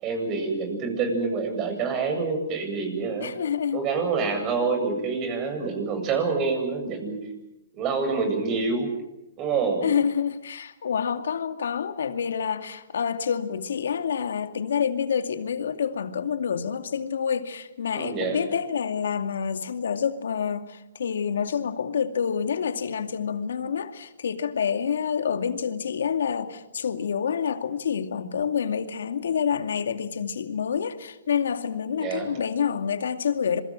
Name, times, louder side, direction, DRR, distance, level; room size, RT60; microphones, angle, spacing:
voice 1, 0.0-3.3 3.7-7.2 7.7-8.9 9.4-9.9 17.9-18.4 32.0-32.3, right 4 dB, 30° right, 7.7 m, -27 dB
voice 2, 3.2-3.9 9.8-33.6, left 7 dB, 80° left, 2.3 m, -27 dB
27.5 x 23.0 x 7.6 m
hypercardioid pair, 140°, 0 cm